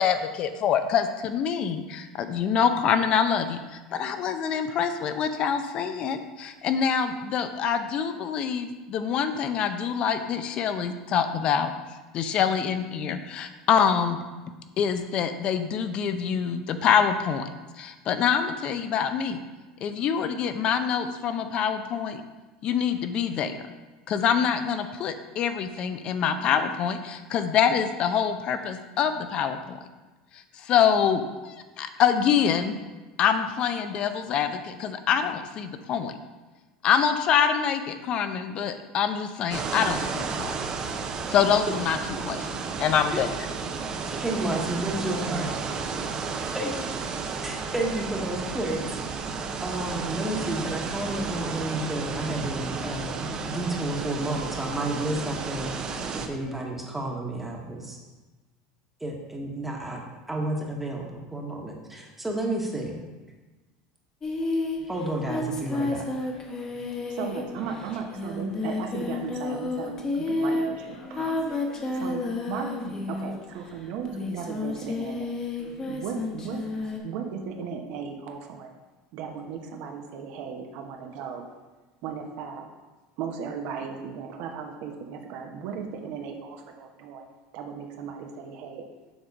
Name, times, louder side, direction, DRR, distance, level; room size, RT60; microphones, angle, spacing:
voice 1, 0.0-11.7 12.1-14.2 14.8-17.5 17.8-19.4 19.8-22.2 22.6-23.6 24.1-29.8 30.6-32.7 33.2-36.1 36.8-40.5 41.3-42.0 42.3-42.5 42.8-43.3, left 7 dB, 45° left, 9 dB, 0.6 m, -25 dB
sound 1, 39.5-56.3, right 5 dB, 35° right, 0.7 m, -32 dB
voice 2, 44.1-45.5 46.5-46.8 47.4-48.9 49.6-58.0 59.0-60.0 60.3-63.0 64.9-66.1, right 1 dB, 10° right, 0 dB, 1.2 m, -31 dB
Singing, 64.2-73.6 74.1-77.0, left 2 dB, 30° left, 1.1 m, -31 dB
voice 3, 67.1-71.4 71.9-75.4 75.8-76.6 77.0-78.7 79.1-81.5 82.0-82.7 83.2-87.2 87.5-88.8, right 6 dB, 65° right, 3 dB, 0.9 m, -36 dB
7.0 x 3.7 x 5.3 m, 1.2 s
supercardioid pair, 115°, 2 cm